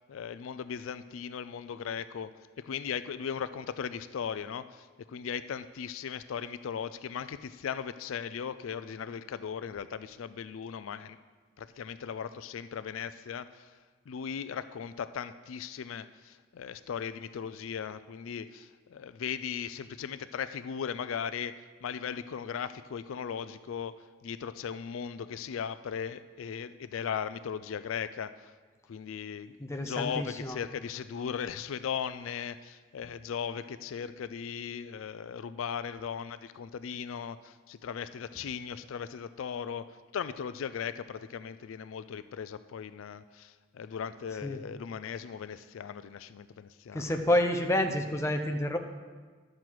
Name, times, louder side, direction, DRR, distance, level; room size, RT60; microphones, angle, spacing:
voice 1, 0.1-11.2 11.6-13.8 14.1-28.5 28.9-47.1, left 7 dB, 80° left, 13 dB, 0.4 m, -38 dB
voice 2, 29.7-30.6 44.4-44.6 46.9-48.8, left 1 dB, 15° left, 4 dB, 0.6 m, -28 dB
11.0 x 7.5 x 4.6 m, 1.4 s
head